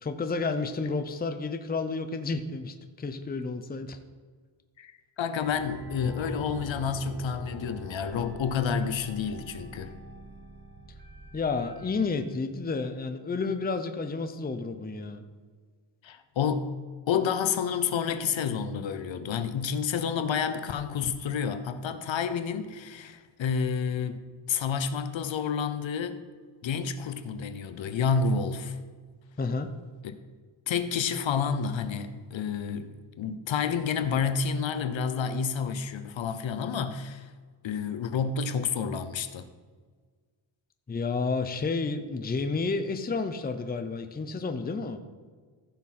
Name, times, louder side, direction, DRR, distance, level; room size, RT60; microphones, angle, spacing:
voice 1, 0.0-4.0 11.3-15.2 29.4-29.7 40.9-45.0, left 4 dB, 20° left, 8 dB, 0.6 m, -31 dB
voice 2, 4.8-10.0 16.0-16.7 17.1-26.2 26.6-28.8 30.0-30.2 30.7-37.3 37.6-39.5, left 6 dB, 70° left, 10 dB, 0.8 m, -29 dB
sound 1, 5.4-12.2, right 3 dB, 50° right, 2.1 m, -44 dB
15.0 x 6.2 x 4.3 m, 1.5 s
wide cardioid pair, 150°, 48 cm